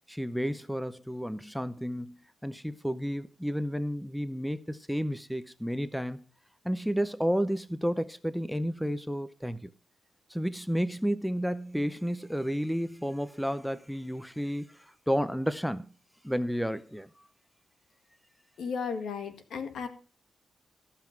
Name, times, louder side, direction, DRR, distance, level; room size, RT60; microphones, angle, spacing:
voice 1, 0.1-6.2 6.6-9.7 10.3-15.9 16.2-17.1, equal, ahead, 0.6 m, -31 dB
voice 2, 18.6-19.9, left 6 dB, 80° left, 1.7 m, -34 dB
15.0 x 5.8 x 5.9 m
cardioid pair, 110°, 0 cm